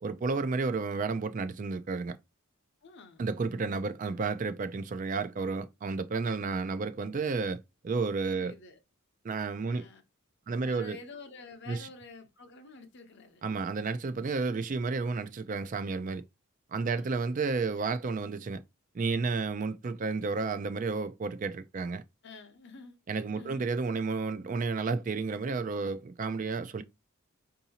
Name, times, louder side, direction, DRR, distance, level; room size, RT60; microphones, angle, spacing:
voice 1, 0.0-2.2 3.2-7.6 7.8-8.5 9.2-9.9 10.5-11.0 11.7-11.9 13.4-16.2 16.7-18.6 18.9-22.0 23.1-26.8, right 4 dB, 35° right, 0.3 m, -31 dB
voice 2, 2.8-3.3 8.3-8.8 9.6-10.0 10.5-13.4 16.8-17.2 22.2-23.0 23.3-23.7, left 3 dB, 55° left, 0.8 m, -49 dB
4.7 x 2.7 x 2.8 m
head